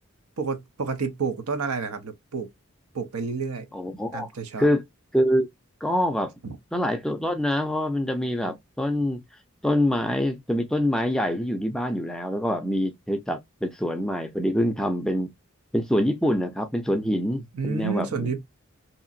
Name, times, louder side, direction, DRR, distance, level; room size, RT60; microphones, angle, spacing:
voice 1, 0.4-2.5 2.9-3.7 4.1-4.7 6.4-6.6 17.5-18.4, right 5 dB, 85° right, 0.7 m, -29 dB
voice 2, 3.7-4.3 4.6-4.8 5.1-5.5 5.8-6.3 6.7-9.2 9.6-15.3 15.7-18.3, equal, 5° left, 0.3 m, -25 dB
2.8 x 2.5 x 2.5 m
head